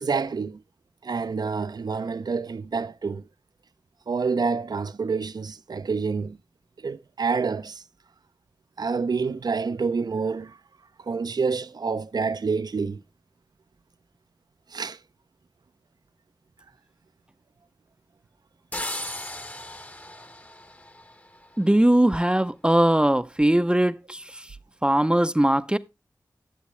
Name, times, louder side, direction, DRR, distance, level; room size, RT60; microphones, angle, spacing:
voice 1, 0.0-0.6 1.0-3.2 4.1-6.4 6.8-7.8 8.8-10.5 11.1-13.0 14.7-15.0, right 5 dB, 65° right, 0.5 m, -27 dB
sound 1, 18.7-21.6, left 1 dB, 20° left, 0.9 m, -36 dB
voice 2, 21.6-24.2 24.8-25.8, right 1 dB, 15° right, 0.5 m, -20 dB
11.5 x 7.4 x 3.2 m
wide cardioid pair, 55°, 7 cm